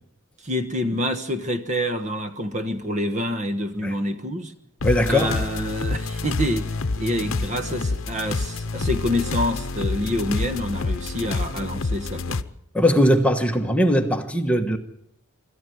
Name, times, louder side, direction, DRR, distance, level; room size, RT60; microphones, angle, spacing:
voice 1, 0.4-4.5 5.1-12.4, equal, 30° right, 1.2 m, -27 dB
sound 1, 4.8-12.4, left 3 dB, 60° left, 0.9 m, -28 dB
voice 2, 4.8-5.3 12.7-14.8, equal, 5° left, 1.3 m, -20 dB
25.5 x 14.0 x 7.9 m
head